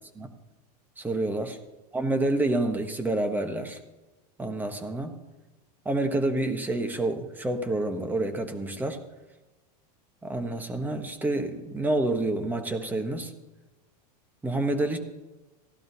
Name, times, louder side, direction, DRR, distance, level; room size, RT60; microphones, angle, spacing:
voice 1, 1.0-1.6 1.9-3.8 4.4-5.1 5.8-9.0 10.2-13.3 14.4-15.0, right 2 dB, 10° right, 7 dB, 1.1 m, -28 dB
16.0 x 12.0 x 2.8 m, 1.1 s
supercardioid pair, 145°, 21 cm